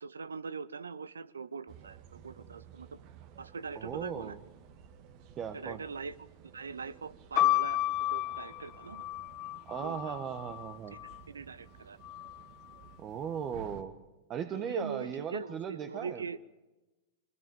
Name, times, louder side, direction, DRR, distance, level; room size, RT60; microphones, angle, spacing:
voice 1, 0.0-2.9 3.4-4.4 5.5-6.2 6.5-7.8 8.1-9.0 9.8-10.2 11.3-12.0 14.5-16.4, right 5 dB, 85° right, 19 dB, 0.7 m, -42 dB
sound 1, 1.7-13.8, right 8 dB, 50° right, 2.0 m, -55 dB
voice 2, 3.7-4.4 5.4-5.8 9.6-11.0 13.0-13.9 14.3-16.2, right 8 dB, 30° right, 8 dB, 1.4 m, -37 dB
sound 2, 7.3-11.2 12.0-12.7, left 15 dB, 40° left, 0.7 m, -32 dB
22.5 x 20.0 x 7.8 m, 1.1 s
hypercardioid pair, 105°, 0 cm